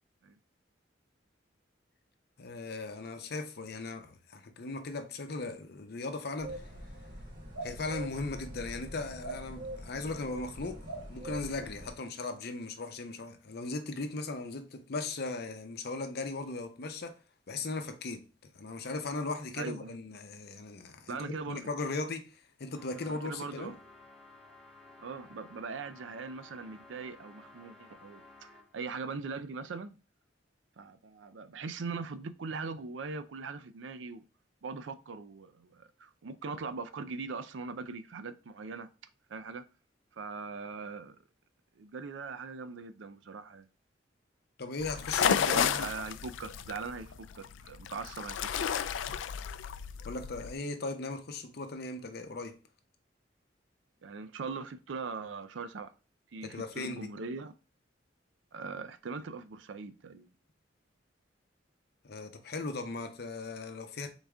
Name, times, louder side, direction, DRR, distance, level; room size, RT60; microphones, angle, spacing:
voice 1, 2.4-6.7 7.6-17.2 17.5-23.8 44.6-45.9 50.0-52.6 56.4-57.1 62.0-64.1, left 3 dB, 60° left, 0.7 m, -38 dB
sound 1, 6.4-11.9, right 1 dB, 50° right, 2.2 m, -43 dB
voice 2, 19.6-19.9 21.1-21.7 23.0-23.7 25.0-30.0 30.8-34.2 34.6-38.9 39.3-39.6 40.2-41.2 41.8-43.7 45.3-48.7 48.9-49.0 54.0-55.9 56.3-57.5 58.5-60.3, right 4 dB, 85° right, 0.5 m, -41 dB
sound 2, 22.7-28.8, left 2 dB, 5° left, 0.8 m, -55 dB
sound 3, 44.8-50.5, left 8 dB, 80° left, 0.3 m, -32 dB
4.0 x 3.4 x 3.5 m
head